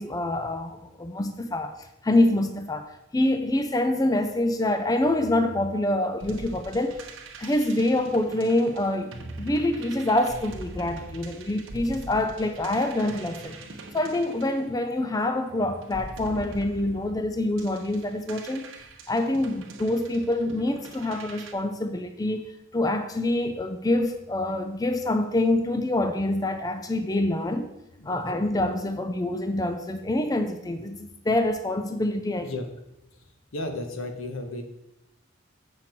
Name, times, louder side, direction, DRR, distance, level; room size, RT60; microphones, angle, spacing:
voice 1, 0.0-2.9 3.1-7.1 7.4-13.6 13.9-18.7 19.1-22.4 22.7-27.7 28.1-32.5, left 1 dB, 20° left, 7 dB, 0.4 m, -26 dB
sound 1, 6.2-15.2 15.8-21.5, right 2 dB, 75° right, 0.9 m, -42 dB
voice 2, 28.0-28.4 32.4-32.7 33.1-33.3 33.5-34.6, left 2 dB, 85° left, 5 dB, 1.1 m, -34 dB
7.3 x 5.9 x 4.4 m, 0.88 s
head